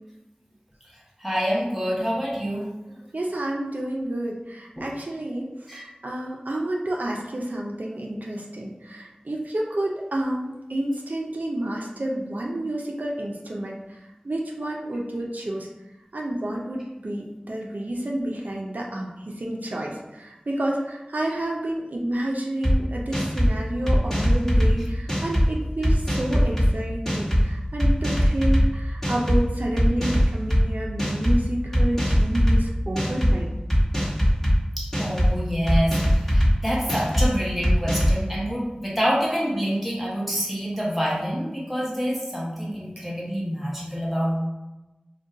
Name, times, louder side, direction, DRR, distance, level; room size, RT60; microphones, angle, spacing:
voice 1, 1.2-2.7 4.8-4.9 5.7-5.8 34.8-44.4, equal, 5° right, -5 dB, 1.0 m, -27 dB
voice 2, 3.1-13.8 14.2-15.7 16.1-33.5, right 1 dB, 90° right, -2 dB, 0.4 m, -29 dB
sound 1, 22.6-22.7 23.1-23.5 23.9-24.7 25.1-25.5 25.8-26.7 27.1-27.4 27.8-28.6 29.0-29.4 29.8-30.6 31.0-31.4 31.7-32.6 33.0-33.3 33.7-34.5 34.9-35.3 35.7-36.5 36.9-37.3 37.6-38.2, equal, 15° left, 1.1 m, -20 dB
2.5 x 2.2 x 3.7 m, 1.0 s
wide cardioid pair, 40°, 3 cm